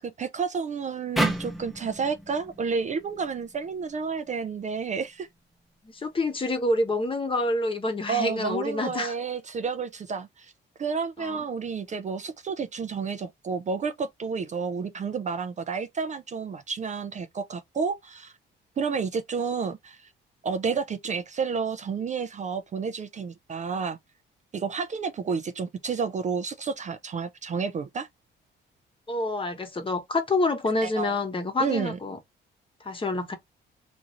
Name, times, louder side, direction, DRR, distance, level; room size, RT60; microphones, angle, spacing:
voice 1, 0.2-5.3 8.1-10.5 10.8-18.3 18.8-20.1 20.4-24.0 24.5-28.1 30.8-31.2 31.6-32.0, right 5 dB, 35° right, 0.4 m, -30 dB
sound 1, 1.2-4.4, right 1 dB, ahead, 0.7 m, -32 dB
voice 2, 5.9-9.1 11.2-11.4 29.1-32.2 32.8-33.4, left 2 dB, 25° left, 0.9 m, -27 dB
3.0 x 2.5 x 2.5 m
cardioid pair, 90°, 20 cm